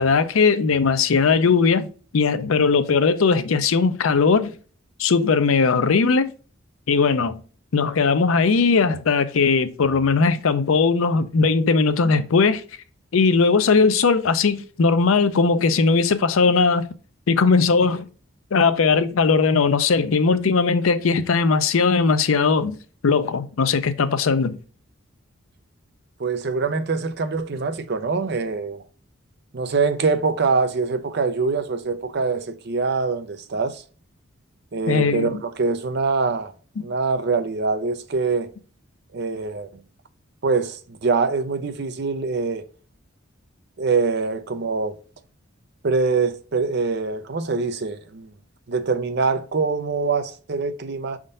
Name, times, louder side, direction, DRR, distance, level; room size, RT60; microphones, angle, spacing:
voice 1, 0.0-1.9 2.1-4.5 5.0-6.3 6.9-7.4 7.7-12.6 13.1-16.9 17.3-18.1 18.5-22.8 23.0-24.6 34.9-35.4, left 4 dB, 75° left, 0.5 m, -19 dB
voice 2, 26.2-28.8 29.5-33.8 34.7-36.5 36.8-38.5 39.1-39.8 40.4-42.6 43.8-45.0 45.8-48.3 48.7-51.2, right 4 dB, 50° right, 0.5 m, -24 dB
5.4 x 3.6 x 2.5 m
head